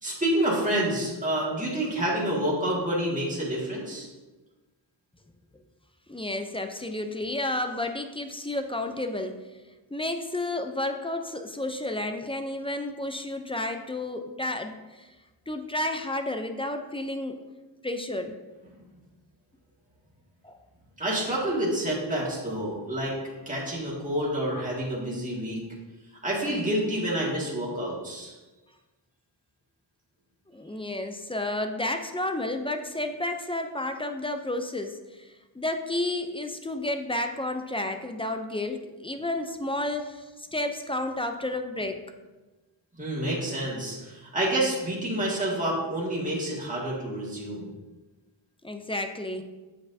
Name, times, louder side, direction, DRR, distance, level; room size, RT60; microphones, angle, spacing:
voice 1, 0.0-4.1 21.0-23.2 23.5-25.6 26.2-28.3 43.0-47.7, right 1 dB, 15° right, -5 dB, 1.9 m, -28 dB
voice 2, 6.1-9.4 9.9-15.1 15.5-17.4 17.8-18.4 20.4-20.6 30.5-42.0 48.6-49.4, left 1 dB, 10° left, 6 dB, 0.5 m, -31 dB
7.8 x 5.8 x 2.7 m, 1.2 s
wide cardioid pair, 80°, 46 cm